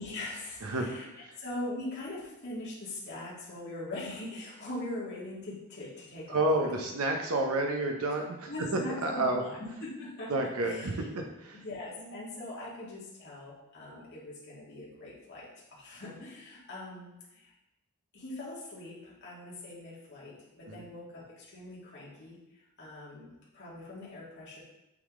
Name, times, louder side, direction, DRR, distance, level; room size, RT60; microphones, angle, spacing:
voice 1, 0.0-1.1 1.4-6.9 8.5-10.3 10.6-11.1 11.6-17.1 18.1-22.4 22.8-23.3 23.5-24.6, left 1 dB, 50° left, -6 dB, 2.1 m, -41 dB
voice 2, 0.6-1.4 6.3-9.4 10.3-11.6 20.7-20.8, right 2 dB, 80° right, 3 dB, 0.7 m, -30 dB
8.1 x 3.7 x 3.7 m, 0.92 s
head